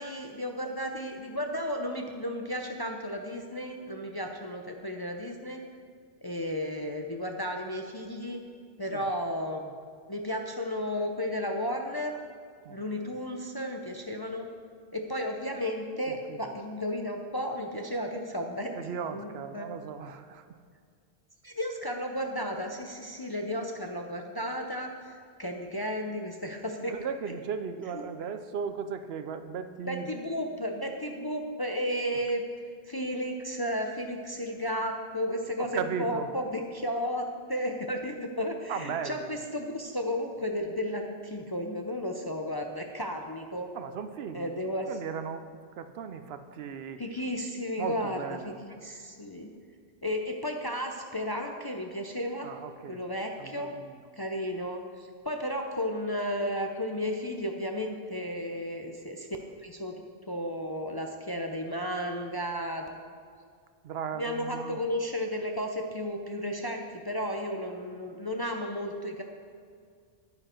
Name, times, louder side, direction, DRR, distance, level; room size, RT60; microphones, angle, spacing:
voice 1, 0.0-5.6 6.2-8.4 8.8-9.7 10.1-12.2 12.7-14.5 14.9-18.7 19.1-19.7 21.4-26.9 27.9-28.0 29.9-32.5 32.9-43.7 44.3-44.9 47.0-49.5 50.0-52.5 52.9-53.7 54.1-59.9 60.3-62.9 64.2-69.2, equal, 30° left, 3 dB, 0.5 m, -33 dB
voice 2, 12.6-13.1 16.1-16.5 18.7-20.5 26.9-30.2 35.6-36.3 38.7-39.4 43.7-44.6 44.9-45.5 45.8-47.0 47.8-48.6 52.4-53.0 53.4-53.9 63.8-64.8, right 6 dB, 70° right, 10 dB, 0.8 m, -37 dB
9.8 x 9.7 x 4.4 m, 2.1 s
omnidirectional pair, 1.1 m